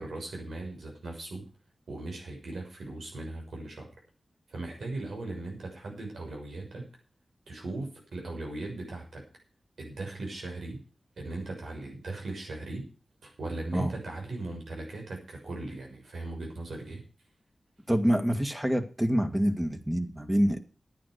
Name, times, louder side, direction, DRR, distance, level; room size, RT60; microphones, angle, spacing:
voice 1, 0.0-1.5 1.9-3.9 4.5-7.0 7.5-9.3 9.8-10.8 11.2-12.9 13.2-17.0, right 2 dB, 90° right, 1 dB, 6.5 m, -38 dB
voice 2, 17.9-20.6, equal, 10° right, 6 dB, 2.1 m, -26 dB
11.0 x 9.4 x 6.7 m, 0.37 s
cardioid pair, 60°, 0 cm